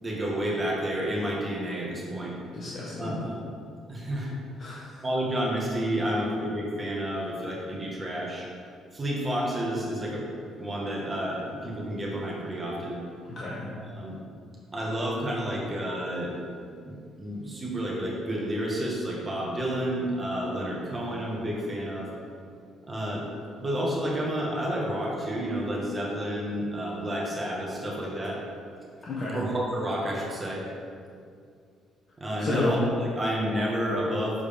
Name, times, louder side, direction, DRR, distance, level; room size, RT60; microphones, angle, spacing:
voice 1, 0.0-2.4 3.0-3.4 3.9-4.4 5.0-8.5 8.9-10.3 10.6-13.0 13.9-14.2 14.7-16.4 16.9-22.1 22.9-23.3 23.6-28.4 29.3-30.6 32.2-34.4, equal, 20° right, -3 dB, 1.8 m, -30 dB
voice 2, 2.5-3.2 4.6-5.0 13.3-13.6 29.0-29.4 32.4-32.8, left 2 dB, 40° left, -8 dB, 1.5 m, -31 dB
7.0 x 4.8 x 5.4 m, 2.2 s
cardioid pair, 105°, 0 cm